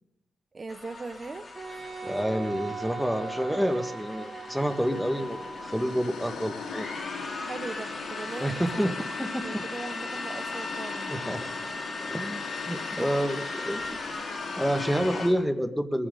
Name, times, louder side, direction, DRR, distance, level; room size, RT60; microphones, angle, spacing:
voice 1, 0.5-1.5 7.4-8.9 9.4-11.2 13.0-13.1, right 3 dB, 35° right, 11 dB, 0.7 m, -39 dB
sound 1, 0.7-15.3, left 3 dB, 40° left, 3.5 m, -38 dB
Wind instrument woodwind instrument, 1.6-5.8, right 4 dB, 15° right, 4.3 m, -39 dB
voice 2, 2.0-6.9 8.4-9.6 11.1-11.5 12.1-14.0 14.6-16.1, equal, ahead, 6 dB, 1.7 m, -29 dB
sound 2, 4.1-15.3, left 5 dB, 90° left, 2.4 m, -41 dB
22.0 x 15.0 x 3.9 m, 0.85 s
cardioid pair, 85°, 0 cm